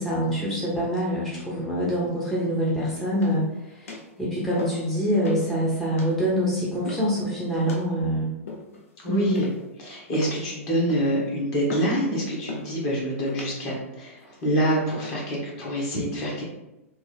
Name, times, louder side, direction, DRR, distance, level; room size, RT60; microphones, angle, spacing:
voice 1, 0.0-3.4 3.7-8.3 9.1-9.3, equal, 5° left, -8 dB, 0.8 m, -25 dB
sound 1, 3.1-3.5 3.9-4.1 4.6-4.9 5.2-5.5 6.0-6.2 6.8-7.2 7.7-7.9 8.5-8.9 9.3-9.7 10.1-10.5 10.9-11.2 11.7-12.0 12.5-12.7 13.3-13.6 14.2-14.5, left 3 dB, 75° left, 0.7 m, -37 dB
voice 2, 9.0-9.5 9.8-16.4, equal, 40° left, -3 dB, 1.4 m, -26 dB
3.4 x 2.1 x 3.5 m, 0.96 s
hypercardioid pair, 105°, 8 cm